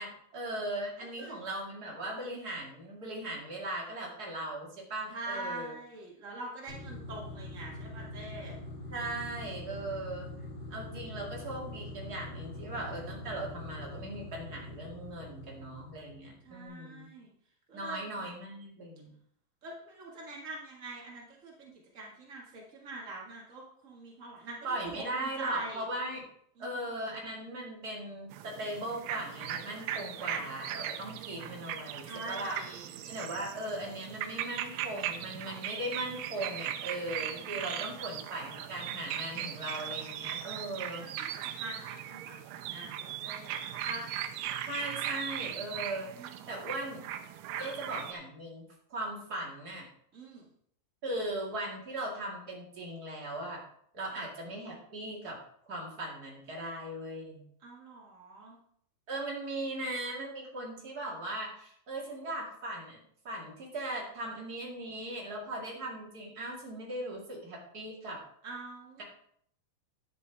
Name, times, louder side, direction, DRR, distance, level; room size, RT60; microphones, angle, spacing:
voice 1, 0.0-5.7 8.9-10.3 10.7-17.1 17.7-19.1 24.6-26.2 26.6-32.6 33.0-41.0 44.7-47.0 47.6-48.6 48.9-49.9 51.0-53.6 53.9-55.4 55.7-57.4 59.1-63.0 63.2-68.2, right 1 dB, 30° right, -3 dB, 1.8 m, -38 dB
voice 2, 5.1-8.6 10.7-11.1 16.4-17.3 17.7-18.3 19.6-25.9 26.6-27.0 32.0-33.1 37.5-38.1 40.9-44.1 46.1-46.6 47.5-47.8 50.1-50.5 54.1-54.2 57.6-58.6 68.4-69.0, right 2 dB, 70° right, -3 dB, 0.7 m, -44 dB
sound 1, 6.7-16.5, left 1 dB, 50° left, 3.9 m, -44 dB
sound 2, 28.3-48.1, right 10 dB, 85° right, 2.6 m, -39 dB
11.0 x 9.0 x 3.5 m, 0.66 s
omnidirectional pair, 4.7 m